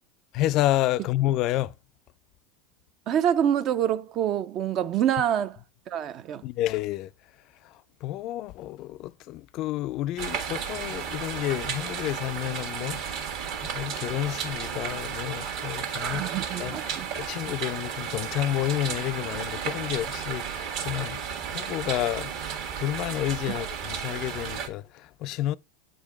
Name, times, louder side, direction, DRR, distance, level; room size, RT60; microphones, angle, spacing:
voice 1, 0.3-1.7 6.4-7.1 8.0-13.3 13.6-16.2 16.6-16.8 17.2-21.2 21.5-22.3 22.8-25.6, left 14 dB, 50° left, 0.3 m, -30 dB
voice 2, 3.1-5.6 5.9-6.4 16.0-17.1 23.5-23.6, right 10 dB, 45° right, 0.4 m, -26 dB
sound 1, 10.2-24.7, right 7 dB, 65° right, 1.4 m, -33 dB
8.2 x 3.9 x 3.5 m
supercardioid pair, 110°, 0 cm